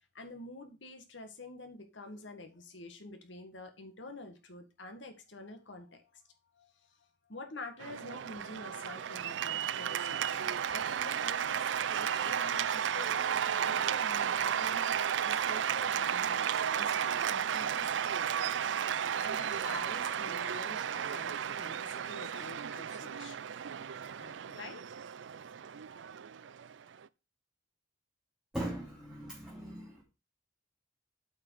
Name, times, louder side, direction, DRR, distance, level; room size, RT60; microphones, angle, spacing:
voice 1, 0.1-18.6 19.2-23.5 24.1-24.8, left 2 dB, 80° left, 1.8 m, -48 dB
Cheering / Applause, 7.8-27.1, right 8 dB, 75° right, 0.4 m, -33 dB
voice 2, 28.5-30.0, right 1 dB, 5° right, 3.0 m, -39 dB
8.4 x 6.0 x 4.8 m
head